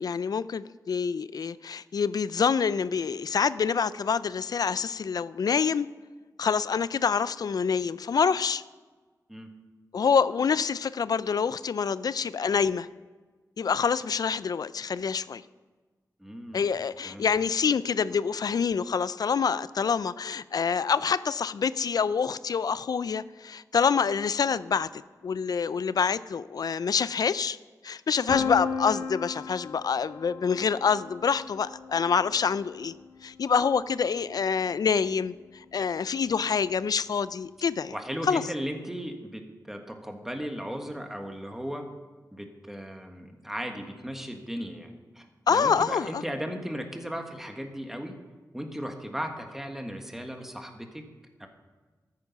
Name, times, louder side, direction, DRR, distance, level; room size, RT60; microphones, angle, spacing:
voice 1, 0.0-5.9 6.4-8.6 9.9-12.9 13.6-15.4 16.5-27.6 27.8-32.9 33.2-37.9 38.3-38.4 45.5-46.2, left 6 dB, 70° left, 16 dB, 0.4 m, -26 dB
voice 2, 16.2-16.7 17.0-17.3 37.9-41.9 42.3-48.1 48.5-51.0 51.4-51.5, equal, 5° right, 4 dB, 1.5 m, -36 dB
Piano, 28.3-34.1, left 5 dB, 85° left, 1.7 m, -36 dB
13.5 x 9.4 x 5.9 m, 1.3 s
wide cardioid pair, 115°, 7 cm